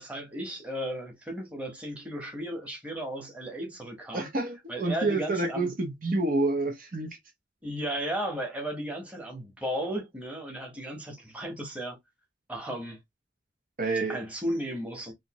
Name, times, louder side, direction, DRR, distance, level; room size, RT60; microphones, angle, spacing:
voice 1, 0.0-4.3 4.7-5.7 7.6-12.0 12.5-13.0 14.1-15.1, right 1 dB, 5° right, 1.1 m, -35 dB
voice 2, 4.1-7.1 13.8-14.2, right 2 dB, 45° right, 0.7 m, -28 dB
3.2 x 2.6 x 2.9 m
head